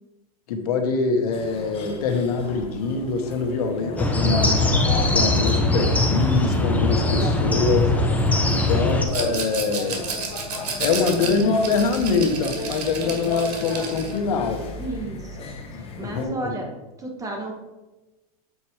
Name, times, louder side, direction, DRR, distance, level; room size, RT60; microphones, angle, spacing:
voice 1, 0.5-4.6 5.1-7.9 8.5-10.0 10.8-14.6 15.7-16.6, left 4 dB, 70° left, 5 dB, 1.5 m, -24 dB
sound 1, 1.3-16.2, left 2 dB, 30° left, 1.5 m, -34 dB
sound 2, 4.0-9.0, left 2 dB, 10° left, 1.0 m, -21 dB
Rattle, 9.1-14.2, right 5 dB, 85° right, 1.8 m, -32 dB
voice 2, 14.8-15.5 16.0-16.7 17.0-17.5, right 2 dB, 15° right, 1 dB, 1.8 m, -33 dB
7.9 x 4.3 x 5.0 m, 1.1 s
hypercardioid pair, 125°, 20 cm